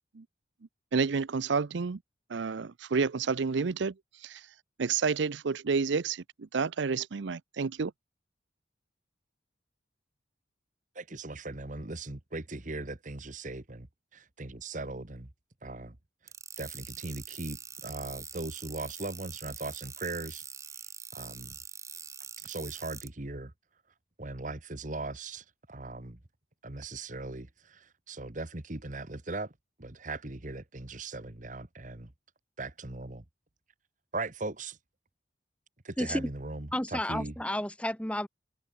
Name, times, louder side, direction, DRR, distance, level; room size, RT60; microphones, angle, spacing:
voice 1, 0.9-2.0 2.3-3.9 4.2-4.4 4.8-7.9, right 5 dB, 70° right, 0.6 m, -30 dB
voice 2, 10.9-13.9 14.1-15.3 15.6-15.9 16.6-20.4 21.1-21.6 22.4-23.5 24.2-26.2 26.6-27.5 28.1-29.5 29.8-32.1 32.6-33.2 34.1-34.8 35.8-37.3, right 2 dB, 40° right, 1.5 m, -39 dB
sound 1, 16.3-23.1, right 6 dB, 15° right, 1.7 m, -44 dB
voice 3, 36.0-36.3 36.7-38.3, left 1 dB, 5° left, 1.4 m, -31 dB
head